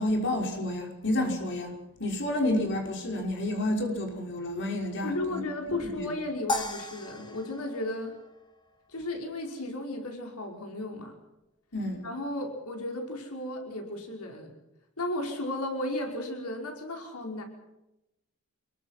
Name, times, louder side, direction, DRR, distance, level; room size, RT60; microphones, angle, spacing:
voice 1, 0.0-1.7 2.0-5.4 5.9-6.1 11.7-12.0, left 1 dB, 55° left, 1 dB, 5.6 m, -29 dB
voice 2, 5.0-8.1 8.9-11.2 12.0-14.5 15.0-17.4, left 1 dB, 90° left, 2 dB, 5.5 m, -34 dB
sound 1, 6.5-8.9, left 1 dB, 20° left, 2.8 m, -36 dB
28.0 x 22.5 x 6.0 m, 0.91 s
head